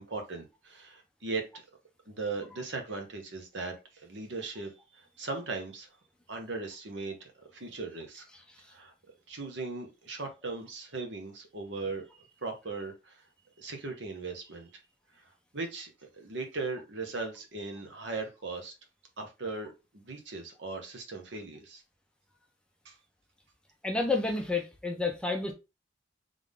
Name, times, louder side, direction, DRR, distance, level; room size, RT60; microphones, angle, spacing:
voice 1, 0.0-1.4 2.1-5.9 6.3-8.2 8.7-8.9 9.3-13.2 13.6-14.7 15.5-18.7 19.2-21.8 22.8-22.9, right 3 dB, 70° right, 1.1 m, -38 dB
voice 2, 23.8-25.5, left 3 dB, 5° left, 0.7 m, -30 dB
3.6 x 3.6 x 3.7 m
head